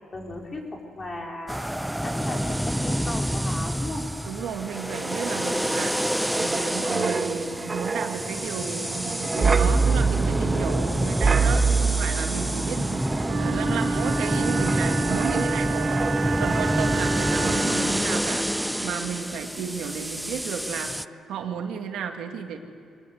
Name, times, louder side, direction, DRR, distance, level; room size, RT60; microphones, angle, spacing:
voice 1, 0.1-1.6 2.0-4.0, left 2 dB, 35° left, 1 dB, 4.2 m, -36 dB
sound 1, 1.5-21.1, equal, 5° right, 0.5 m, -28 dB
voice 2, 4.3-6.0 6.4-18.4 18.8-20.9 21.3-22.6, right 7 dB, 80° right, 4 dB, 2.0 m, -33 dB
Wind, 4.7-17.1 17.4-17.7, right 4 dB, 30° right, 1.2 m, -27 dB
Wind instrument woodwind instrument, 13.2-18.1, right 3 dB, 60° right, 2.3 m, -29 dB
23.5 x 19.5 x 8.0 m, 2.4 s
cardioid pair, 90°, 0 cm